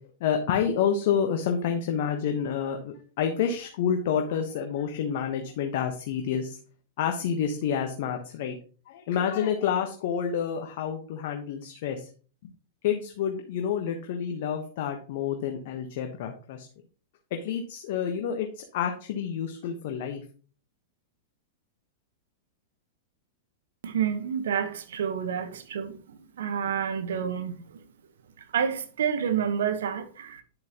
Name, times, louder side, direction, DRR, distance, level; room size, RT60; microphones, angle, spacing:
voice 1, 0.2-6.6 7.0-8.6 8.9-12.1 12.4-12.5 12.8-16.7 17.3-20.2, left 8 dB, 60° left, 1.2 m, -29 dB
voice 2, 23.8-27.8 28.5-30.4, right 8 dB, 70° right, 1.2 m, -29 dB
10.0 x 7.5 x 3.0 m
hypercardioid pair, 105°, 0 cm